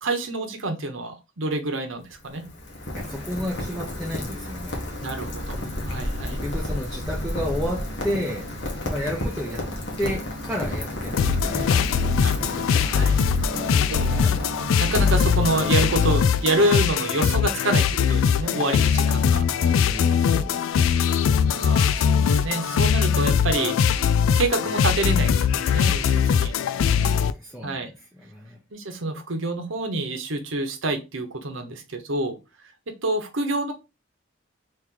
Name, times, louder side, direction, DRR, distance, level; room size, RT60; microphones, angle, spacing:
voice 1, 0.0-2.5 5.0-6.4 12.2-13.5 13.9-14.2 14.8-19.4 20.9-21.1 21.5-24.1 24.3-26.5 27.6-27.9 28.7-32.4 33.0-33.7, right 2 dB, 80° right, 5 dB, 1.0 m, -27 dB
Rain, 1.9-16.7, equal, 60° left, 1.1 m, -32 dB
voice 2, 2.9-4.9 6.3-8.5 8.9-9.7 10.0-11.9 13.4-13.8 14.1-14.4 19.6-21.1 26.8-28.6, equal, ahead, -4 dB, 0.7 m, -32 dB
sound 1, 11.2-27.3, left 7 dB, 85° left, 0.3 m, -21 dB
3.1 x 3.0 x 3.7 m, 0.26 s
head